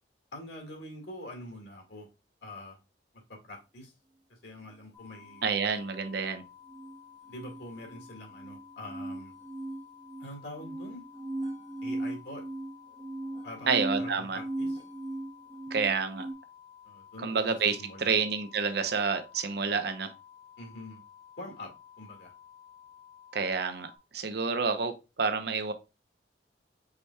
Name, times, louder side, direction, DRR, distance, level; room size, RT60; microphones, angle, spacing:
voice 1, 0.3-2.1 2.4-2.8 3.3-3.9 4.3-5.5 7.3-9.3 10.2-11.0 11.8-12.4 13.4-14.8 16.8-18.1 20.6-21.0 21.4-22.3, left 1 dB, 75° left, 1.9 m, -45 dB
sound 1, 4.9-24.0, left 9 dB, 20° left, 0.9 m, -54 dB
voice 2, 5.4-6.4 13.7-14.4 15.7-16.3 17.2-20.1 23.3-25.7, right 5 dB, 65° right, 0.7 m, -29 dB
sound 2, 6.7-16.3, right 2 dB, 25° right, 0.7 m, -38 dB
5.0 x 4.2 x 2.2 m
head